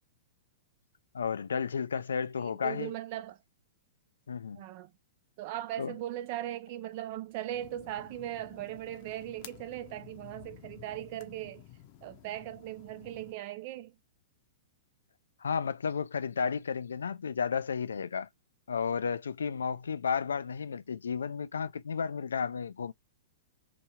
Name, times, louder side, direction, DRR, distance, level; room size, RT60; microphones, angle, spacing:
voice 1, 1.1-2.9 4.3-4.6 5.8-5.9 15.4-18.3 18.7-22.9, left 6 dB, 90° left, 0.3 m, -32 dB
voice 2, 2.4-3.4 4.6-4.9 5.4-11.7 12.0-14.0, right 13 dB, 50° right, 0.5 m, -39 dB
sound 1, 7.5-13.3, left 12 dB, 45° left, 0.6 m, -53 dB
2.9 x 2.3 x 2.8 m
hypercardioid pair, 130°, 0 cm